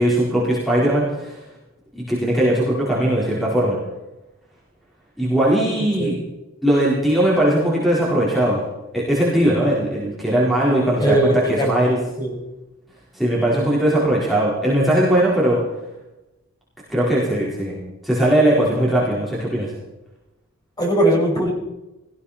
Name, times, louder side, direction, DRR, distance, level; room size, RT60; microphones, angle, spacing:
voice 1, 0.0-1.4 1.9-3.8 5.2-6.1 6.6-8.6 8.9-12.0 13.1-15.6 16.9-19.7, right 1 dB, ahead, -7 dB, 4.3 m, -19 dB
voice 2, 11.0-11.8 12.2-12.3 20.8-21.5, right 1 dB, 20° left, -2 dB, 5.7 m, -19 dB
18.5 x 15.5 x 4.3 m, 0.99 s
head